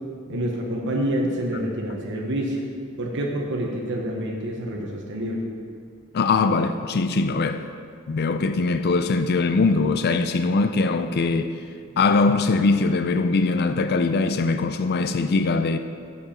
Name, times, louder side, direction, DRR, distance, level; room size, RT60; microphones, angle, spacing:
voice 1, 0.3-2.7 3.0-5.5 11.9-12.0, right 1 dB, 60° right, 1.1 m, -27 dB
voice 2, 6.1-7.6 8.1-11.5 12.0-15.8, left 3 dB, 50° left, 0.4 m, -21 dB
7.9 x 6.9 x 5.7 m
head